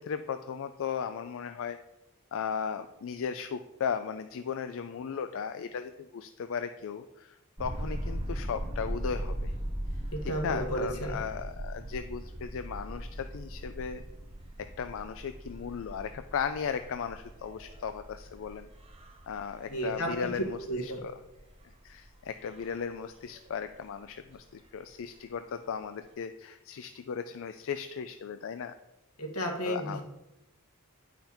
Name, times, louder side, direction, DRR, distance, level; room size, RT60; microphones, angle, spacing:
voice 1, 0.0-1.8 2.3-9.5 10.2-14.0 14.8-18.7 19.3-21.2 21.8-28.7 29.6-30.0, left 6 dB, 60° left, 10 dB, 0.4 m, -36 dB
sound 1, 7.6-24.0 24.4-24.5 24.7-24.8 26.0-26.1, right 1 dB, 25° right, 1.1 m, -40 dB
voice 2, 10.3-11.2 19.7-20.1 20.7-21.0 29.2-30.0, right 1 dB, 80° left, 1 dB, 2.0 m, -32 dB
10.0 x 5.8 x 4.4 m, 0.95 s
head